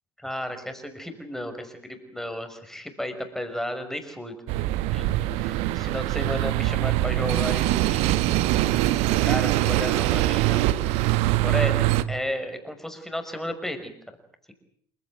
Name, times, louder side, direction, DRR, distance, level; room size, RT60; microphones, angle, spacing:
voice 1, 0.2-4.3 4.9-5.1 5.4-8.2 8.5-11.1 11.4-13.9, left 1 dB, 5° left, 7 dB, 5.7 m, -33 dB
sound 1, 4.5-12.0, right 15 dB, 55° right, 1.1 m, -23 dB
27.5 x 16.0 x 9.5 m, 0.64 s
figure-of-eight pair, 60°, 13 cm